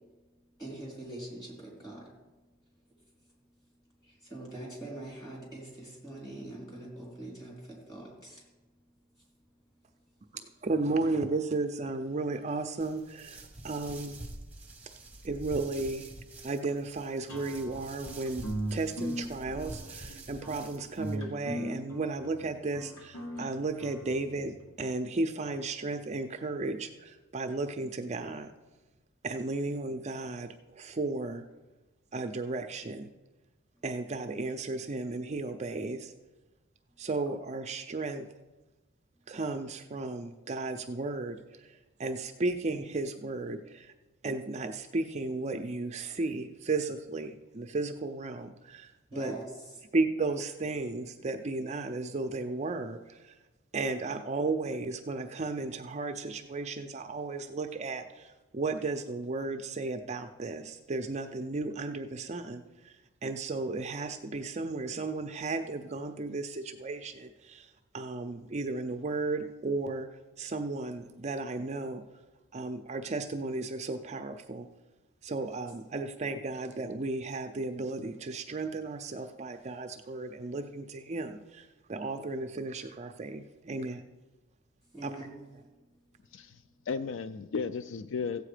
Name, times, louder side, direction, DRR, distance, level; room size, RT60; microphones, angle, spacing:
voice 1, 0.6-2.1 4.0-8.4 49.1-49.8 84.9-85.5, right 1 dB, 20° left, -4 dB, 4.1 m, -43 dB
voice 2, 10.6-14.2 15.2-16.1 16.4-18.4 18.7-28.5 29.2-31.4 32.1-33.1 33.8-36.1 37.0-38.2 39.3-41.4 42.0-43.9 44.2-48.9 49.2-49.4 49.9-53.3 53.7-62.9 63.2-67.7 67.9-70.1 70.4-72.0 72.5-74.7 75.2-84.0 85.0-85.1, right 3 dB, 35° right, 6 dB, 0.5 m, -34 dB
sound 1, 12.8-21.1, right 2 dB, 5° right, 1.1 m, -47 dB
sound 2, 17.3-24.7, right 1 dB, 80° left, 2.1 m, -39 dB
voice 3, 86.3-88.4, left 5 dB, 65° left, 12 dB, 0.4 m, -35 dB
15.0 x 8.2 x 5.0 m, 1.2 s
head